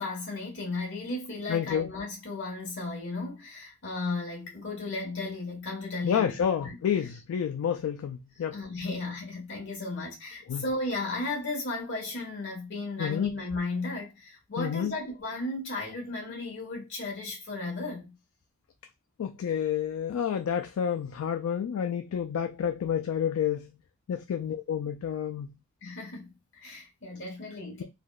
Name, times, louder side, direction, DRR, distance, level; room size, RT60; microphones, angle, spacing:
voice 1, 0.0-6.8 8.5-18.1 25.8-27.8, left 2 dB, 60° left, 1.3 m, -35 dB
voice 2, 1.5-1.9 6.0-8.6 10.5-10.6 13.0-13.3 14.6-15.0 19.2-23.7 24.1-25.5, left 8 dB, 85° left, 0.3 m, -29 dB
3.3 x 2.1 x 2.3 m
head